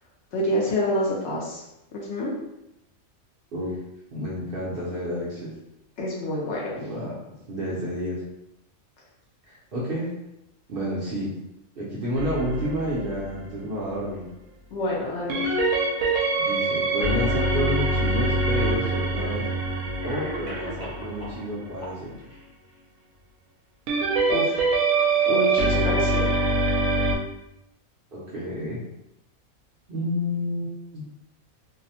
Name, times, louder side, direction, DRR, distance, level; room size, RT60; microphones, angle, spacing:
voice 1, 0.3-1.6 1.9-2.3 6.0-6.8 14.7-15.6 24.3-24.6 25.3-26.4, left 1 dB, 65° left, -4 dB, 0.8 m, -27 dB
voice 2, 4.1-5.5 6.8-8.2 9.4-10.1 10.7-11.3 11.8-14.2 16.3-19.4 20.0-22.2 28.1-28.8 29.9-31.0, equal, 55° right, -7 dB, 0.7 m, -30 dB
sound 1, 12.2-13.4 15.3-21.8 23.9-27.2, right 2 dB, 75° right, 1.0 m, -24 dB
Cough, 20.0-21.4 21.8-22.4, equal, 5° right, 0.6 m, -38 dB
2.7 x 2.0 x 2.7 m, 0.88 s
omnidirectional pair, 1.5 m